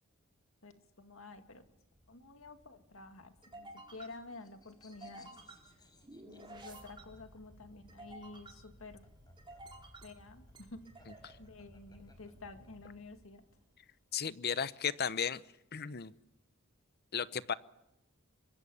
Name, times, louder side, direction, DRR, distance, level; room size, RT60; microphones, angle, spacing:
voice 1, 0.6-1.6 2.1-5.3 6.2-9.0 10.0-10.9 11.4-13.4, left 3 dB, 70° left, 7 dB, 2.1 m, -51 dB
sound 1, 1.1-13.8, right 1 dB, 25° right, 4.8 m, -55 dB
sound 2, 3.4-7.4 8.7-12.9, left 2 dB, 20° left, 4.8 m, -65 dB
voice 2, 14.1-15.4 15.7-16.1 17.1-17.5, left 7 dB, 50° left, 15 dB, 0.8 m, -35 dB
24.0 x 23.5 x 7.1 m, 0.86 s
head